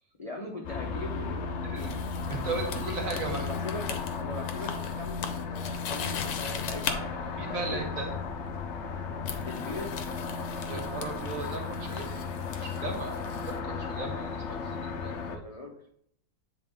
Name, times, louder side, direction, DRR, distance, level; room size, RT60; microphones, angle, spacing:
voice 1, 0.2-2.1 3.4-8.1 9.4-10.0 15.3-15.7, left 2 dB, 45° left, -1 dB, 0.4 m, -40 dB
sound 1, 0.6-15.4, left 5 dB, 90° left, 0.6 m, -35 dB
sound 2, 1.8-7.0 8.2-8.5 9.2-13.6, left 7 dB, 70° left, 1.1 m, -39 dB
voice 2, 2.3-3.5 7.4-8.1 10.7-12.1 12.6-15.4, right 3 dB, 55° right, 2 dB, 1.4 m, -36 dB
8.4 x 3.7 x 3.6 m, 0.69 s
omnidirectional pair, 1.8 m